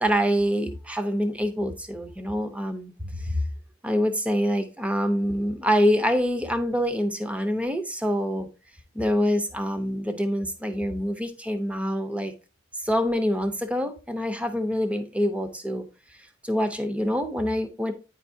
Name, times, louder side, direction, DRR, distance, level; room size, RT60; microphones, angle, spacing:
voice 1, 0.0-3.4 3.8-8.5 8.9-12.3 12.8-15.9 16.4-17.9, equal, 5° right, 0.6 m, -25 dB
9.2 x 4.5 x 2.6 m
head